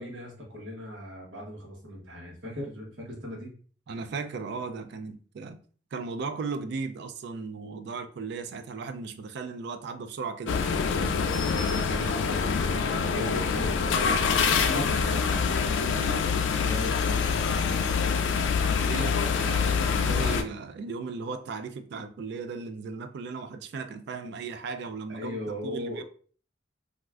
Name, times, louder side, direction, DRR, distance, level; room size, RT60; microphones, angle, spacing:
voice 1, 0.0-3.6 11.5-17.7 25.1-26.0, left 1 dB, 85° right, 1.0 m, -38 dB
voice 2, 3.9-5.6 5.9-10.7 18.6-26.0, right 4 dB, 60° right, 0.3 m, -36 dB
sound 1, 10.5-20.4, left 5 dB, 75° left, 0.3 m, -25 dB
3.3 x 2.4 x 2.3 m
head